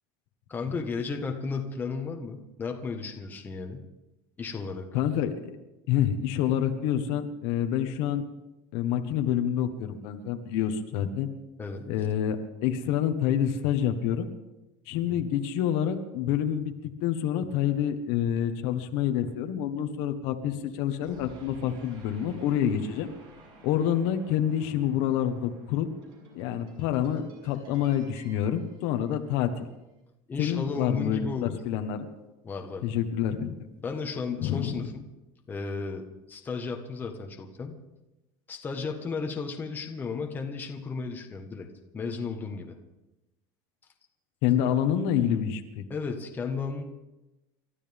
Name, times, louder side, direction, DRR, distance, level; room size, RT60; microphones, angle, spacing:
voice 1, 0.5-3.9 4.4-4.9 11.6-11.9 15.1-15.3 30.3-31.6 32.4-32.8 33.8-35.0 35.5-37.8 38.5-41.7 41.9-42.8 45.9-46.8, left 4 dB, 15° left, 2 dB, 1.5 m, -34 dB
voice 2, 4.9-5.3 5.9-8.2 8.7-11.3 11.9-14.3 14.9-16.7 17.0-23.1 23.6-25.9 26.3-29.7 30.4-32.1 32.8-33.5 34.4-34.9 44.4-45.8, left 10 dB, 65° left, 7 dB, 1.5 m, -27 dB
sound 1, 21.0-29.6, right 1 dB, 55° right, 7.2 m, -53 dB
29.0 x 13.5 x 3.6 m, 0.98 s
cardioid pair, 160°, 11 cm